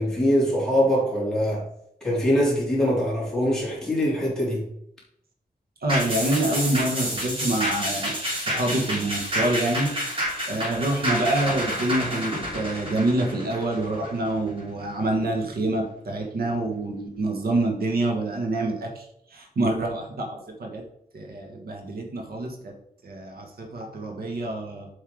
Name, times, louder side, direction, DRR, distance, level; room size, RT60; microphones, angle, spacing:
voice 1, 0.0-1.6 2.0-4.6, equal, 5° left, -6 dB, 3.3 m, -23 dB
voice 2, 5.8-10.0 10.5-20.8 21.1-22.8 23.0-24.9, right 2 dB, 75° right, 2 dB, 1.5 m, -26 dB
sound 1, 5.9-14.6 15.0-15.1, equal, 35° right, 3.6 m, -29 dB
7.7 x 5.5 x 4.9 m, 0.73 s
wide cardioid pair, 170°, 16 cm